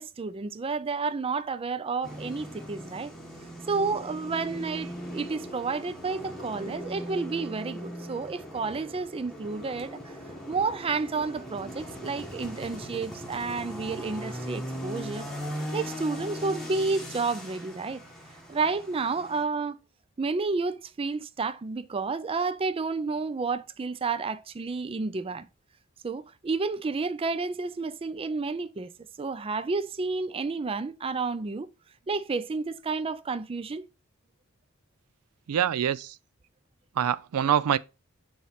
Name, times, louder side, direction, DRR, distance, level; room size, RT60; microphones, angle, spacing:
voice 1, 0.0-3.1 3.7-10.0 10.5-15.3 15.7-18.0 18.5-19.8 20.2-25.5 26.0-28.9 29.2-31.7 32.1-33.9, right 4 dB, 25° right, 0.4 m, -30 dB
sound 1, 2.0-19.4, equal, ahead, 1.4 m, -39 dB
voice 2, 35.5-36.1 37.0-37.8, right 9 dB, 90° right, 0.4 m, -25 dB
7.1 x 3.2 x 5.6 m
head